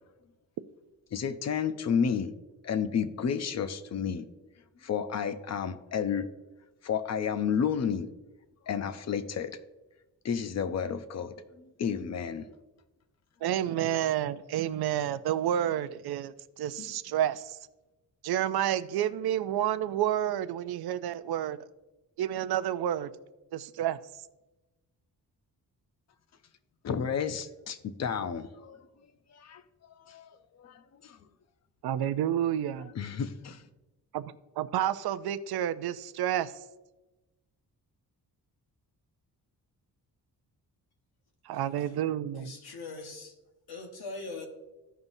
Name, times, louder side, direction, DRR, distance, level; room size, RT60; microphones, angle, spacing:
voice 1, 1.1-2.3 2.6-4.3 4.8-6.3 6.8-8.1 8.7-9.6 10.2-11.3 11.8-12.5 26.8-28.8 29.3-29.6 30.1-30.3 30.6-31.2 33.0-33.6, left 7 dB, 45° left, 11 dB, 0.6 m, -31 dB
voice 2, 13.4-17.6 18.2-21.6 22.2-23.1 23.5-24.0 31.8-32.9 34.1-36.5 41.4-42.5, right 11 dB, 75° right, 13 dB, 0.5 m, -30 dB
voice 3, 42.3-43.4 43.7-44.5, left 3 dB, 80° left, 4 dB, 1.4 m, -41 dB
14.5 x 5.6 x 2.7 m, 1.1 s
wide cardioid pair, 135°, 38 cm